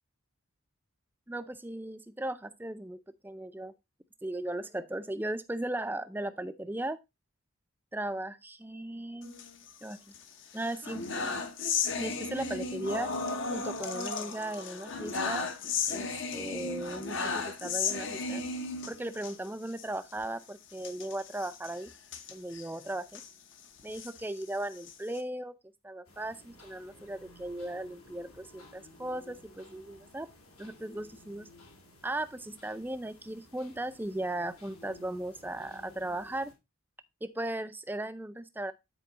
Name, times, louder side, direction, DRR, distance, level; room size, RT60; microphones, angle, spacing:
voice 1, 1.3-3.7 4.2-7.0 7.9-9.3 9.8-10.1 10.5-11.0 12.0-13.1 13.5-15.5 15.9-18.5 18.9-21.9 22.3-23.2 23.8-25.6 25.8-30.3 30.6-31.5 32.0-36.5 37.2-38.7, right 1 dB, 10° right, 0.4 m, -37 dB
sound 1, 9.2-10.2 10.6-19.3 19.7-19.9 20.1-20.2 20.8-23.3 23.8-25.2, left 4 dB, 55° left, 0.9 m, -35 dB
sound 2, 26.0-36.5, left 2 dB, 80° left, 2.4 m, -55 dB
9.2 x 4.6 x 3.9 m
head